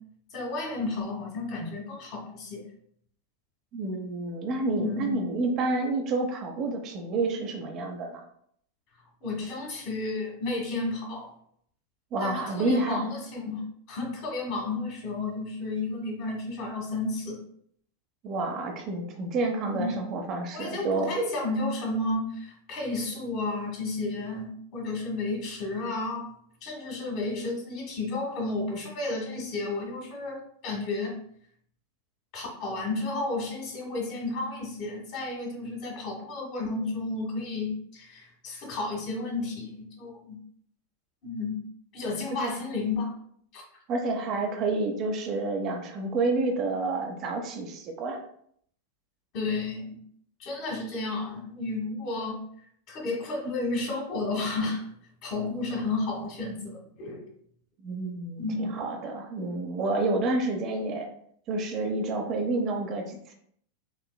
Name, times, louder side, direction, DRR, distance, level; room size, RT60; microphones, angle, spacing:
voice 1, 0.3-2.7 4.7-5.2 9.2-11.3 12.2-13.6 13.9-17.4 19.8-20.0 20.5-26.3 26.6-31.2 32.3-40.4 41.2-41.6 41.9-43.1 43.5-43.6 49.3-50.0 50.4-52.4 52.9-54.9 55.2-57.2 58.4-58.6, left 2 dB, 40° left, -1 dB, 1.4 m, -32 dB
voice 2, 3.7-8.2 12.1-13.1 18.2-21.1 42.4-42.6 43.9-48.2 57.8-61.1 61.5-63.3, right 2 dB, 35° right, 2 dB, 0.7 m, -29 dB
5.7 x 3.0 x 2.3 m, 0.66 s
figure-of-eight pair, 90°, 0 cm